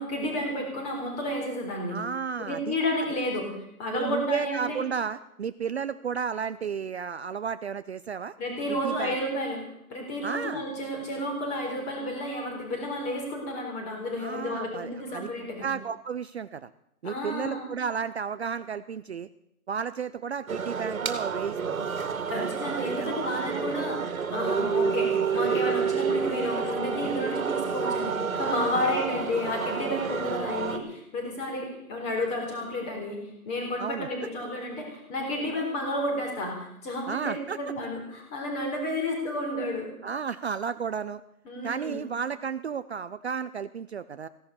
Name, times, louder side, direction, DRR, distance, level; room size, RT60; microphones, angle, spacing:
voice 1, 0.0-2.0 2.4-4.8 8.4-9.6 9.9-15.7 17.0-17.6 22.3-39.9 41.4-42.0, left 1 dB, 15° left, 1 dB, 3.9 m, -31 dB
voice 2, 1.9-2.8 3.9-8.3 8.7-9.1 10.2-10.6 14.2-15.3 15.6-16.7 17.0-19.3 19.7-21.8 22.3-22.5 23.0-23.6 28.7-28.9 33.8-34.1 37.1-37.6 40.0-41.2 41.6-44.3, right 6 dB, 50° right, 13 dB, 0.6 m, -33 dB
sound 1, 20.5-30.8, right 6 dB, 70° right, 2.4 m, -29 dB
16.0 x 11.5 x 6.9 m, 0.79 s
hypercardioid pair, 160°, 44 cm